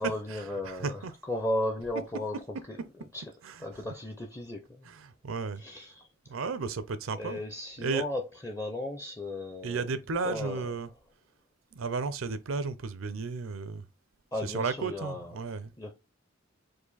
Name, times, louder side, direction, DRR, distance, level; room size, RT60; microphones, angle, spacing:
voice 1, 0.0-2.4 2.7-3.2 3.6-4.9 5.6-6.4 7.2-10.0 10.2-10.7 14.3-15.4 15.8-15.9, left 1 dB, 15° left, 0.5 m, -35 dB
voice 2, 0.7-1.1 3.4-3.6 4.9-5.6 6.3-7.4 7.8-8.0 9.6-10.9 11.7-13.8 14.4-15.7, right 4 dB, 80° right, 0.5 m, -33 dB
4.8 x 2.5 x 4.0 m
head